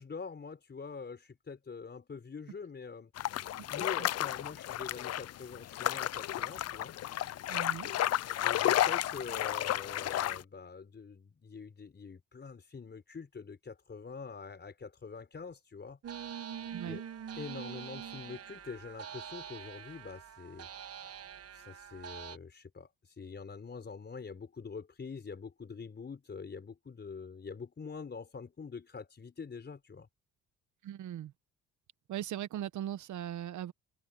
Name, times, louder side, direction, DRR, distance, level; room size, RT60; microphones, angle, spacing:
voice 1, 0.0-3.1 3.7-6.9 8.4-16.0 16.8-17.0 17.3-20.7 21.5-30.1, left 5 dB, 35° left, 4.8 m, -45 dB
sound 1, 3.2-10.4, left 13 dB, 55° left, 0.6 m, -32 dB
voice 2, 7.5-7.9 16.7-17.0 30.8-31.3 32.1-33.7, right 11 dB, 75° right, 1.3 m, -39 dB
sound 2, 16.0-22.4, right 8 dB, 50° right, 1.5 m, -44 dB
cardioid pair, 90°, 30 cm